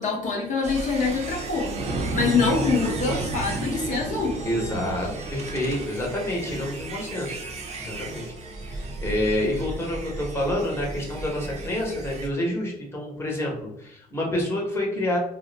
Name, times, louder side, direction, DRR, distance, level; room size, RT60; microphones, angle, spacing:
voice 1, 0.0-1.7 2.1-4.4, left 4 dB, 50° left, -2 dB, 0.8 m, -25 dB
sound 1, 0.6-12.3, right 2 dB, 40° right, 0.6 m, -33 dB
voice 2, 4.4-7.4 7.8-8.2 8.6-15.2, left 1 dB, 15° left, -2 dB, 1.0 m, -28 dB
2.4 x 2.1 x 3.9 m, 0.77 s
cardioid pair, 110°, 17 cm